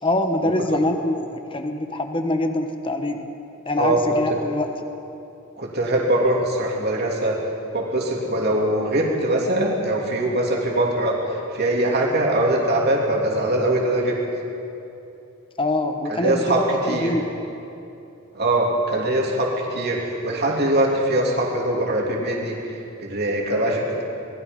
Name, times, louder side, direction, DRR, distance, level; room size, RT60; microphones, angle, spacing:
voice 1, 0.0-3.3 3.6-4.8 15.6-17.3, left 1 dB, 25° left, 6 dB, 1.2 m, -24 dB
voice 2, 5.6-7.4 7.7-11.1 11.5-14.2 16.1-17.1 18.3-24.0, right 1 dB, 50° right, -2 dB, 3.1 m, -22 dB
27.5 x 20.0 x 5.4 m, 2.8 s
head